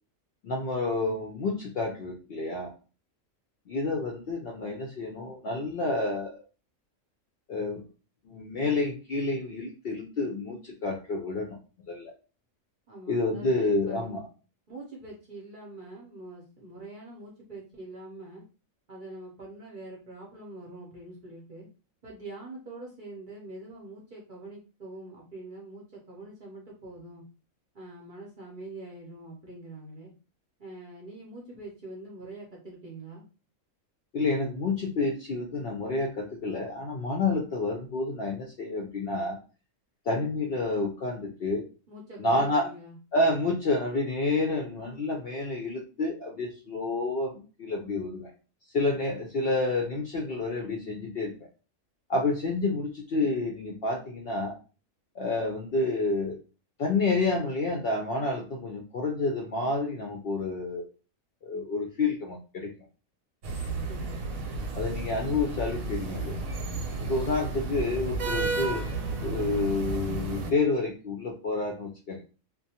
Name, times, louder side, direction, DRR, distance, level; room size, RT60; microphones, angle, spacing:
voice 1, 0.4-2.7 3.7-6.4 7.5-7.8 8.2-11.6 11.9-12.1 13.1-14.2 34.1-39.4 40.1-41.6 42.2-42.7 43.1-48.3 48.7-51.3 52.1-54.5 55.1-56.4 56.8-60.9 61.4-62.7 64.7-66.4 67.0-68.9 69.2-72.2, left 3 dB, 65° left, 0 dB, 0.6 m, -29 dB
voice 2, 12.9-14.2 14.7-18.4 18.9-21.7 22.0-27.2 27.7-30.1 30.6-33.3 41.9-43.0 63.9-64.2, right 2 dB, 50° right, -3 dB, 0.7 m, -44 dB
sound 1, 63.4-70.5, right 2 dB, 85° right, 1.0 m, -32 dB
2.4 x 2.2 x 2.7 m, 0.34 s
omnidirectional pair, 1.4 m